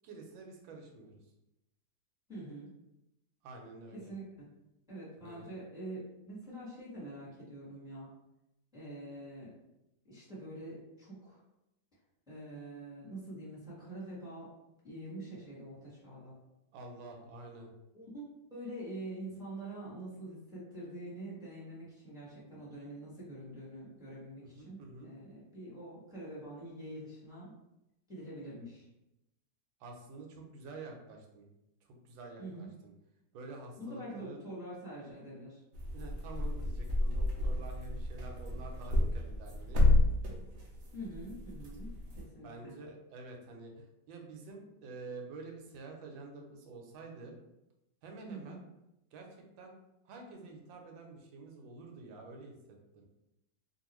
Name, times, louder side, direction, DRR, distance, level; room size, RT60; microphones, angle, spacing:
voice 1, 0.0-1.2 3.4-4.1 5.2-5.5 16.7-17.7 24.4-25.1 29.8-31.5 31.9-32.9 33.3-34.4 35.9-40.1 42.4-47.4 48.0-48.6 49.1-49.3 49.6-49.7 50.0-52.5 52.9-53.0, right 3 dB, 90° right, 2 dB, 1.4 m, -48 dB
voice 2, 2.3-2.7 3.9-4.2 4.9-8.1 8.7-9.5 10.1-11.4 12.3-14.5 14.8-16.4 17.9-27.5 28.1-28.9 32.4-32.7 33.8-35.6 40.9-42.7 48.3-48.6, right 1 dB, ahead, -9 dB, 1.1 m, -45 dB
sound 1, 35.7-42.2, left 1 dB, 65° right, 0.8 m, -30 dB
3.0 x 2.4 x 3.0 m, 0.89 s
omnidirectional pair, 2.0 m